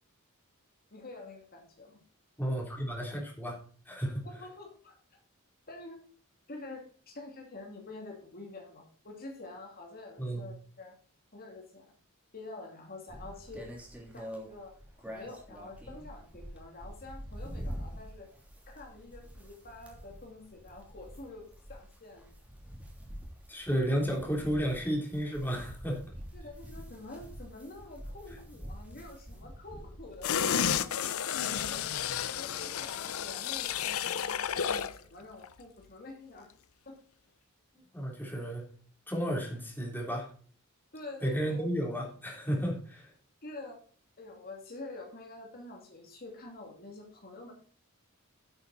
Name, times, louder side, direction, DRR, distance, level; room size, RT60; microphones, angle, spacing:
voice 1, 0.9-2.0 4.2-5.0 5.7-6.0 6.5-11.0 11.3-11.9 12.3-13.7 14.1-18.3 18.7-22.3 26.3-30.9 31.3-31.8 32.3-36.5 36.9-37.0 40.9-41.6 43.4-43.8 44.2-47.5, left 2 dB, 45° left, 1 dB, 2.5 m, -47 dB
voice 2, 2.4-3.6 3.8-4.2 10.2-10.5 23.5-26.1 37.9-38.6 39.1-40.3 41.2-43.1, equal, 10° left, -1 dB, 3.3 m, -32 dB
sound 1, 13.1-30.3, equal, 5° right, 2.9 m, -46 dB
sound 2, 30.2-35.0 35.3-35.4, left 8 dB, 80° left, 0.6 m, -31 dB
9.8 x 8.7 x 4.1 m, 0.44 s
head